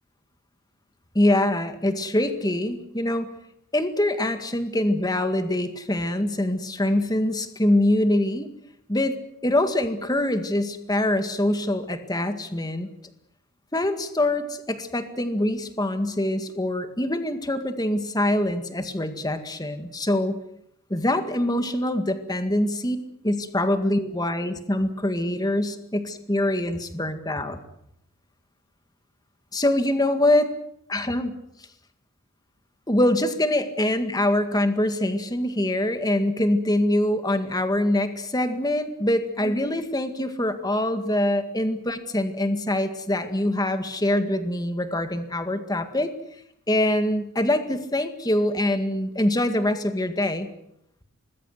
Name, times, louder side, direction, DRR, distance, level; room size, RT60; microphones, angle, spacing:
voice 1, 1.2-3.3 3.7-8.5 8.9-9.1 9.4-12.9 13.7-20.4 20.9-23.0 23.2-27.6 29.5-30.5 30.9-31.4 32.9-46.1 46.7-50.5, left 1 dB, 15° left, 8 dB, 1.9 m, -24 dB
25.0 x 20.5 x 7.9 m, 0.75 s
head